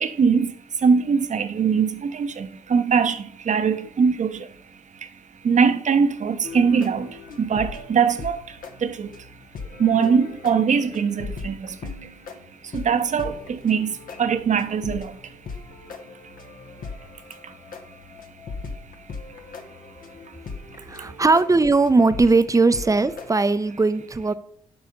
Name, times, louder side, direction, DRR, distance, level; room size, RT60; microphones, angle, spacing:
voice 1, 0.0-0.5 0.8-4.3 5.4-7.1 7.4-8.4 8.8-9.1 9.8-11.6 12.7-13.9 14.2-15.1, right 6 dB, 50° right, 1.0 m, -21 dB
sound 1, 6.4-23.3, left 4 dB, 55° left, 1.2 m, -39 dB
voice 2, 20.9-24.3, right 3 dB, 20° right, 0.7 m, -19 dB
8.0 x 5.5 x 5.3 m
hypercardioid pair, 40°, 17 cm